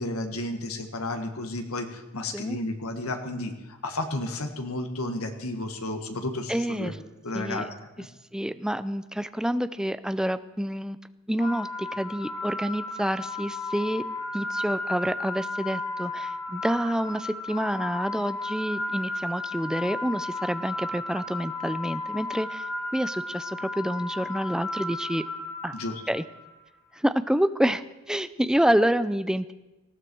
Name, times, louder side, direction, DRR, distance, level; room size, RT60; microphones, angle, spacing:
voice 1, 0.0-3.5 3.8-6.9 7.2-7.7 8.0-8.1 25.7-25.9, left 2 dB, 85° left, 5 dB, 1.8 m, -32 dB
voice 2, 6.5-7.0 7.3-7.6 8.3-11.0 11.3-14.0 14.3-22.7 22.9-25.2 25.6-25.8 26.1-26.2 26.9-29.5, equal, 5° right, 13 dB, 0.5 m, -28 dB
sound 1, 11.4-26.5, left 2 dB, 50° left, 3.3 m, -34 dB
19.0 x 15.0 x 4.6 m, 1.1 s
head